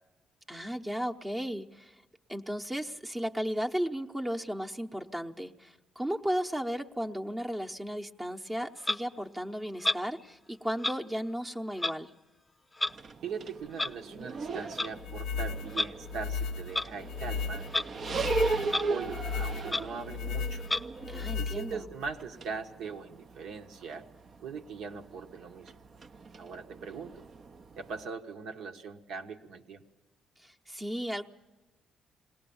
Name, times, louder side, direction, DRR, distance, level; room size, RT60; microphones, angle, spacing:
voice 1, 0.5-2.0 2.3-12.1 21.1-21.9 30.4-31.3, equal, 15° right, 2 dB, 0.8 m, -35 dB
Clock, 8.8-9.0 9.8-10.0 10.8-10.9 11.8-11.9 12.8-12.9 13.8-13.9 14.6-14.9 15.7-15.9 16.7-16.9 17.7-17.9 18.2-18.3 18.7-18.8 19.3-19.4 19.6-19.8 20.6-20.8, left 2 dB, 15° left, 0.6 m, -30 dB
sound 1, 12.9-28.1, right 3 dB, 45° right, 0.6 m, -38 dB
voice 2, 13.2-17.7 17.9-20.6 21.4-24.1 24.4-25.7 26.4-27.3 27.8-29.8, right 5 dB, 80° right, 5 dB, 1.3 m, -41 dB
sound 2, 15.0-22.1, left 5 dB, 85° left, 0.6 m, -36 dB
21.0 x 18.0 x 7.1 m, 1.1 s
cardioid pair, 90°, 0 cm